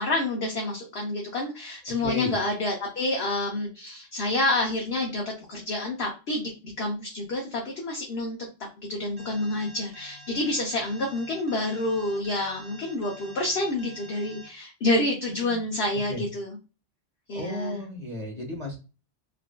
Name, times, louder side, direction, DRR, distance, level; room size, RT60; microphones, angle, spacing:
voice 1, 0.0-5.2 5.5-6.5 6.8-8.4 8.8-16.6 17.3-17.8, left 2 dB, 60° left, -1 dB, 1.0 m, -28 dB
voice 2, 2.0-2.3 15.3-15.6 16.1-16.2 17.3-18.8, left 1 dB, 30° right, -2 dB, 1.4 m, -33 dB
Alarm, 9.2-14.5, equal, 80° right, 1.2 m, -48 dB
4.9 x 2.6 x 2.2 m, 0.32 s
omnidirectional pair, 1.3 m